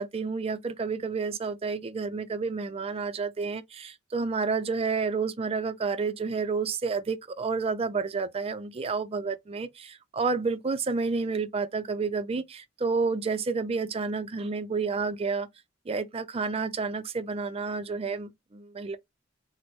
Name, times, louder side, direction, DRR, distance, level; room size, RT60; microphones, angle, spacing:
voice 1, 0.0-15.5 15.9-19.0, right 4 dB, 30° right, 0.4 m, -30 dB
4.3 x 2.1 x 3.1 m
head